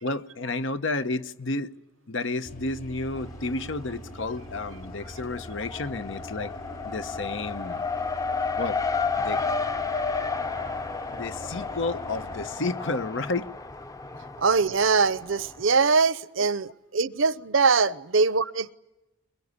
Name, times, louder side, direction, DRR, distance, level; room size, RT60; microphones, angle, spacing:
voice 1, 0.0-1.8 2.1-6.5 6.8-7.8 8.6-8.8 9.2-9.4 11.1-13.5 16.4-16.5 17.8-17.9, left 3 dB, 65° left, 1.0 m, -31 dB
sound 1, 2.4-12.5, right 1 dB, 45° left, 5.0 m, -43 dB
Race car auto racing, 3.2-3.9 4.2-15.6, left 4 dB, 15° left, 0.8 m, -32 dB
voice 2, 14.4-18.7, right 4 dB, 70° right, 0.8 m, -22 dB
22.5 x 21.5 x 9.6 m
head